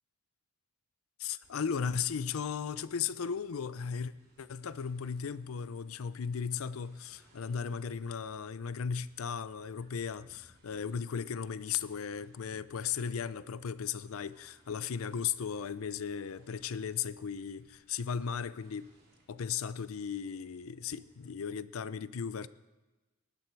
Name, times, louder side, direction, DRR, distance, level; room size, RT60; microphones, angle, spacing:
voice 1, 1.2-4.1 4.4-18.9 19.3-22.5, left 7 dB, 80° left, 0.5 m, -36 dB
sound 1, 1.4-21.3, right 1 dB, 50° right, 3.3 m, -67 dB
19.0 x 11.0 x 4.6 m
head